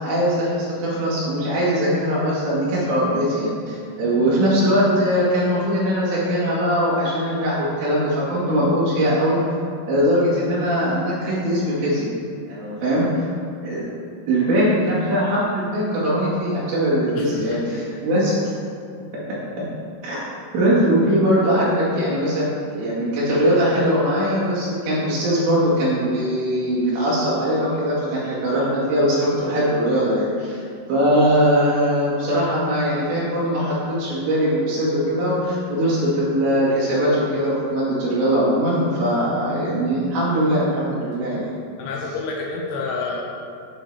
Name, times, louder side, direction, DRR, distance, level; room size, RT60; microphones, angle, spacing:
voice 1, 0.0-9.4 9.9-12.1 12.4-13.3 13.6-13.9 14.3-18.5 19.3-19.4 20.0-20.3 20.5-30.6 30.9-41.5, equal, 90° right, -9 dB, 4.3 m, -21 dB
voice 2, 17.1-17.8 41.8-43.2, left 4 dB, 80° left, -1 dB, 2.4 m, -29 dB
12.5 x 4.7 x 2.8 m, 2.4 s
omnidirectional pair, 4.9 m